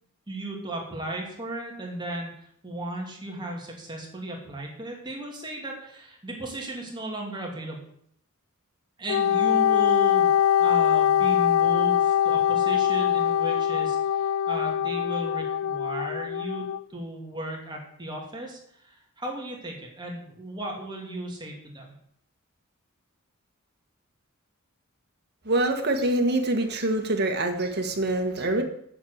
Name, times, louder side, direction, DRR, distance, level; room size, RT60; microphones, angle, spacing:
voice 1, 0.3-7.8 9.0-10.3 10.6-16.6 16.9-21.9 28.5-28.6, right 1 dB, 20° right, -1 dB, 2.6 m, -35 dB
Wind instrument woodwind instrument, 9.1-16.8, left 9 dB, 65° left, 0.3 m, -23 dB
voice 2, 25.4-28.6, right 2 dB, 50° right, 4 dB, 1.6 m, -25 dB
7.9 x 7.4 x 8.0 m, 0.68 s
head